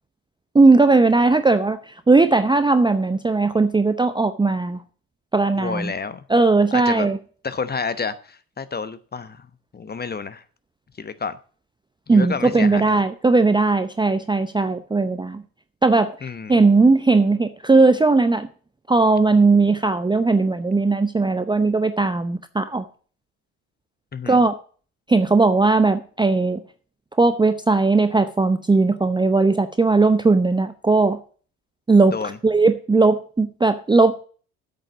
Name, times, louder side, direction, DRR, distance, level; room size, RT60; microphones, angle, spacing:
voice 1, 0.5-4.8 5.3-5.9 6.3-7.2 12.1-15.4 15.8-16.1 16.5-18.5 18.9-22.9 24.3-24.5 25.1-26.6 27.2-31.2 31.9-32.2 32.4-34.2, right 3 dB, 10° right, 0.7 m, -18 dB
voice 2, 5.6-6.2 6.7-7.1 7.4-9.5 9.7-10.4 11.0-11.4 12.1-13.0 16.2-16.5 24.1-24.4 32.1-32.4, left 5 dB, 20° left, 1.0 m, -29 dB
8.2 x 6.8 x 8.2 m
hypercardioid pair, 65°, 45 cm